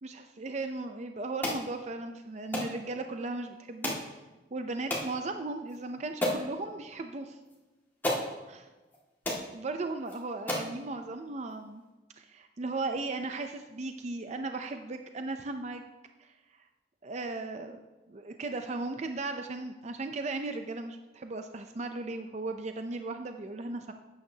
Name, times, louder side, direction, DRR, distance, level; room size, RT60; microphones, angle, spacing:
voice 1, 0.0-3.9 4.5-7.4 8.5-8.7 9.5-11.8 12.2-15.8 16.2-16.3 17.0-23.9, right 3 dB, 40° right, 6 dB, 0.5 m, -36 dB
sound 1, 1.4-1.6 2.5-2.7 3.8-4.1 4.9-5.1 5.7-5.8 6.2-6.5 7.5-7.6 8.0-8.3 8.9-9.0 9.2-9.5 10.1-10.2 10.5-10.7, left 1 dB, 10° left, 1.9 m, -31 dB
12.5 x 8.9 x 2.8 m, 1.1 s
head